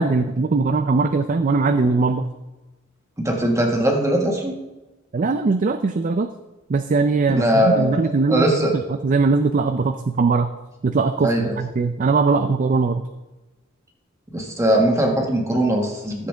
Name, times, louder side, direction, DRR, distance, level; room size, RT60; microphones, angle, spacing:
voice 1, 0.0-2.3 5.1-6.3 6.7-8.4 9.0-10.5 10.8-13.0, right 4 dB, 40° right, 8 dB, 0.4 m, -20 dB
voice 2, 3.2-4.5 7.3-8.0 8.3-8.7 11.2-11.6 14.3-16.3, right 1 dB, 15° right, 0 dB, 1.7 m, -20 dB
14.0 x 7.6 x 3.4 m, 1.1 s
head